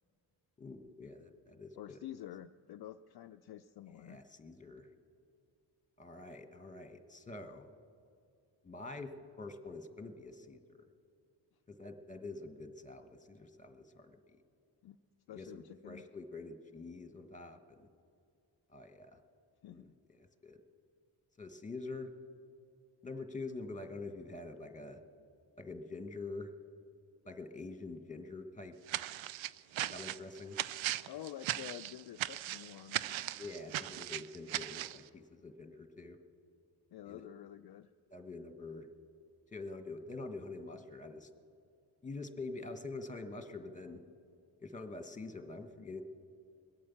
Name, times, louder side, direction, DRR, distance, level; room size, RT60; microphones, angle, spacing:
voice 1, 0.6-2.0 4.0-4.9 6.0-7.7 8.6-10.8 11.7-14.2 15.3-17.9 18.7-19.2 19.7-19.9 20.2-20.6 21.4-22.1 23.0-25.0 25.6-26.5 27.2-28.7 29.9-30.6 33.4-36.2 37.1-37.3 38.1-38.9 39.5-41.3 42.0-44.0 44.6-46.0, left 3 dB, 15° left, 8 dB, 1.4 m, -46 dB
voice 2, 1.8-4.2 14.8-15.0 15.3-16.0 19.6-19.9 31.1-33.3 36.9-37.9, left 11 dB, 55° left, 8 dB, 0.5 m, -49 dB
sound 1, 28.9-35.0, right 13 dB, 80° right, 0.5 m, -38 dB
21.5 x 8.6 x 7.1 m, 2.4 s
cardioid pair, 55°, 46 cm